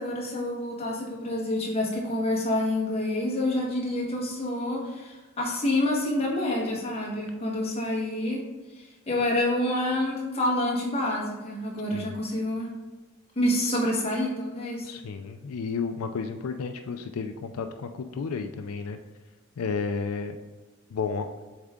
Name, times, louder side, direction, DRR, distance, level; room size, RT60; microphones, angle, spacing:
voice 1, 0.0-8.4 8.7-12.7 13.3-14.9, left 1 dB, 30° left, -3 dB, 1.3 m, -28 dB
voice 2, 14.8-19.0 19.6-20.3 20.9-21.3, left 5 dB, 85° left, 7 dB, 0.4 m, -32 dB
7.3 x 3.6 x 3.6 m, 1.2 s
head